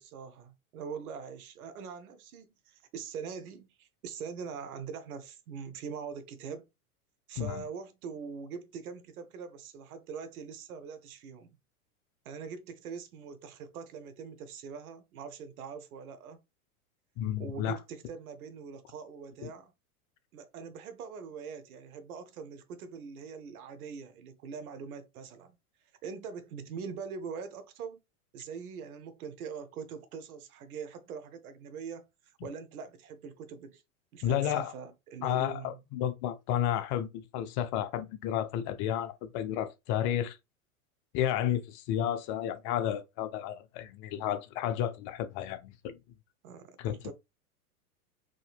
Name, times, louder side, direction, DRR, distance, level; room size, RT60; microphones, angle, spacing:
voice 1, 0.0-6.7 7.3-11.5 12.2-16.4 17.4-19.7 20.3-25.6 26.0-28.0 28.3-32.1 32.4-33.8 34.1-35.8 46.4-47.1, right 6 dB, 75° right, 0.8 m, -43 dB
voice 2, 17.2-17.8 19.4-19.5 34.2-34.7 35.2-40.4 41.1-46.0 46.8-47.1, left 11 dB, 40° left, 0.6 m, -32 dB
3.7 x 2.7 x 2.4 m
hypercardioid pair, 100°, 44 cm